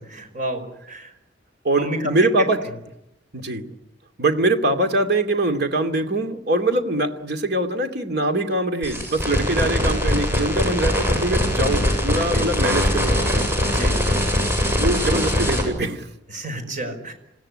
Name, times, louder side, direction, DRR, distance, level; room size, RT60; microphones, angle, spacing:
voice 1, 0.1-0.6 0.9-1.1 1.8-2.1 12.3-12.4 13.7-14.0 16.3-17.1, right 1 dB, 45° right, 6 dB, 5.3 m, -30 dB
voice 2, 1.6-2.6 3.3-3.7 4.2-13.5 14.8-16.1, right 2 dB, 60° right, 6 dB, 2.4 m, -23 dB
sound 1, 8.8-15.6, left 1 dB, 15° right, 7.4 m, -21 dB
28.0 x 16.5 x 9.9 m, 0.88 s
head